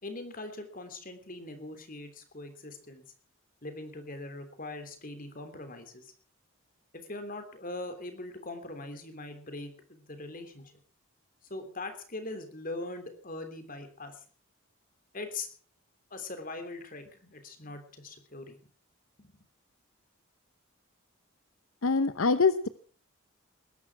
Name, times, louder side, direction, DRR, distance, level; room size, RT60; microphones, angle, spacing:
voice 1, 0.0-3.0 3.6-6.1 6.9-10.7 11.5-14.2 15.1-15.5 16.1-18.6 19.2-19.3, left 2 dB, 40° left, 7 dB, 3.2 m, -41 dB
voice 2, 21.8-22.7, left 4 dB, 75° left, 12 dB, 0.8 m, -24 dB
20.5 x 11.0 x 6.0 m, 0.42 s
head